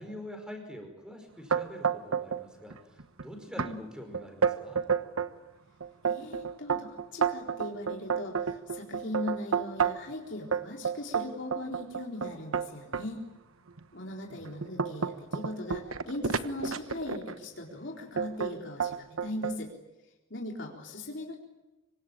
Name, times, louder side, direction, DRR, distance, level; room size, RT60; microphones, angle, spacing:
voice 1, 0.0-4.9, equal, 5° right, 5 dB, 5.3 m, -45 dB
sound 1, 1.5-2.4 2.7-3.2 3.6-3.7 4.1-5.3 5.8-10.1 10.5-13.1 13.7-13.8 14.3-17.4 18.2-18.5 18.8-19.6, right 6 dB, 90° right, 1.2 m, -30 dB
voice 2, 6.0-13.2 13.9-19.7 20.3-21.4, left 1 dB, 60° left, 0 dB, 4.0 m, -39 dB
26.0 x 25.0 x 8.8 m, 1.0 s
head